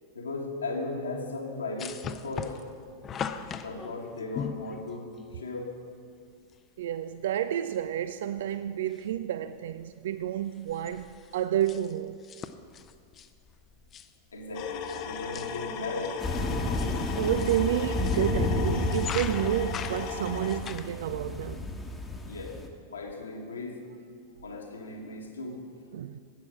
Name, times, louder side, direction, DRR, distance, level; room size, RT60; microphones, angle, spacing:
voice 1, 0.1-2.7 3.0-3.1 3.6-5.7 14.3-16.2 22.3-23.8 24.4-25.6, left 3 dB, 75° left, 1.6 m, -37 dB
sound 1, 1.8-5.4 6.5-6.6 6.9-7.0 7.7-8.1 8.4-9.2 9.6-9.8 10.1-15.1 15.3-15.8 16.4-18.3 18.8-20.9, left 7 dB, 25° left, 0.6 m, -40 dB
voice 2, 6.8-11.1 11.3-12.2 17.2-21.7 25.9-26.2, right 11 dB, 60° right, 0.3 m, -30 dB
sound 2, 14.5-20.6, left 6 dB, 45° left, 1.0 m, -36 dB
sound 3, 16.2-22.7, left 2 dB, 10° left, 1.1 m, -32 dB
11.5 x 8.3 x 6.3 m
figure-of-eight pair, 90°, 0 cm